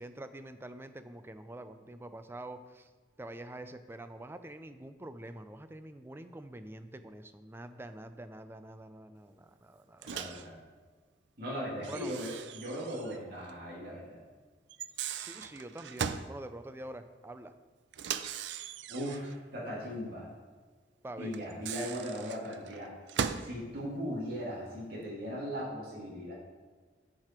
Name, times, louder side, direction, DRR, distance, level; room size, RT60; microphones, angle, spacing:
voice 1, 0.0-2.9 3.2-10.1 11.9-12.1 15.2-17.5 21.0-21.3, right 1 dB, 15° right, 9 dB, 0.4 m, -46 dB
voice 2, 10.0-10.6 11.4-14.2 18.9-20.3 21.2-22.9 23.4-26.3, equal, 55° right, -7 dB, 2.2 m, -38 dB
Microwave oven, 10.0-10.5 11.8-13.2 13.5-13.6 14.7-16.3 17.9-19.4 21.3-23.5, right 7 dB, 75° right, 0.4 m, -38 dB
9.3 x 4.9 x 4.4 m, 1.4 s
head